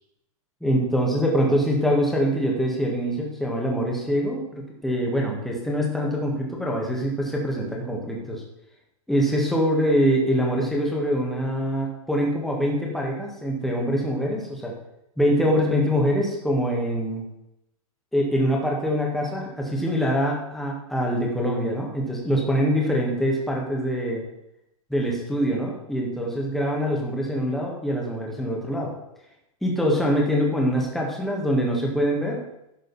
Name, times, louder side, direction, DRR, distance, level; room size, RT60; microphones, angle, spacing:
voice 1, 0.6-8.4 9.1-14.7 15.2-17.2 18.1-24.2 24.9-28.9 29.6-32.4, equal, ahead, -2 dB, 1.7 m, -24 dB
11.5 x 6.3 x 4.2 m, 0.83 s
hypercardioid pair, 155°, 18 cm